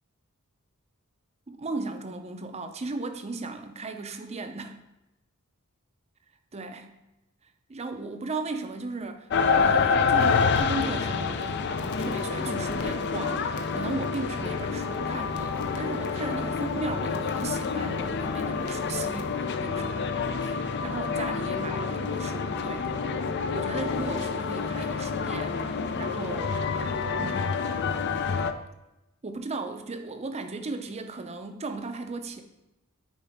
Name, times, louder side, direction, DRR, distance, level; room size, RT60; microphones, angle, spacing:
voice 1, 1.5-4.8 6.5-6.9 7.7-11.7 12.0-22.9 23.5-26.9 27.2-27.5 29.2-32.4, right 3 dB, 30° right, 7 dB, 0.6 m, -36 dB
sound 1, 9.3-28.5, left 5 dB, 50° left, 0.5 m, -28 dB
Crackle, 9.5-19.4, left 3 dB, 90° left, 0.8 m, -49 dB
10.5 x 4.4 x 3.5 m, 0.94 s
head